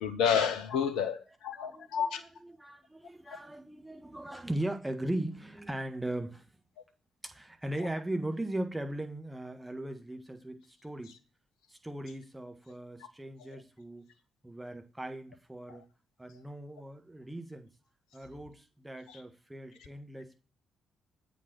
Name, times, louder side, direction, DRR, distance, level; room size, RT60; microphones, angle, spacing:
voice 1, 0.0-2.2 3.3-3.4 15.7-15.8 19.1-19.2, left 7 dB, 65° left, 0.8 m, -30 dB
voice 2, 1.6-6.5 7.2-11.2 11.8-14.0 14.4-15.8 16.2-17.7 18.1-20.4, right 1 dB, 10° right, 1.6 m, -38 dB
8.2 x 5.0 x 6.1 m
figure-of-eight pair, 40°, 0 cm